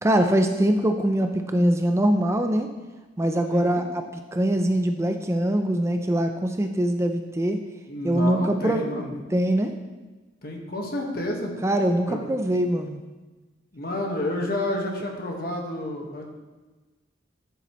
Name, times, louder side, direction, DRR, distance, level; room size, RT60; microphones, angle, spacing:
voice 1, 0.0-2.7 3.2-4.1 4.3-7.6 8.0-8.8 9.3-9.7 11.6-13.0, right 1 dB, 15° right, 6 dB, 0.4 m, -23 dB
voice 2, 3.4-3.8 7.9-9.1 10.4-11.5 12.1-12.2 13.7-16.3, left 1 dB, 50° left, 1 dB, 1.4 m, -30 dB
12.0 x 7.0 x 3.0 m, 1.3 s
head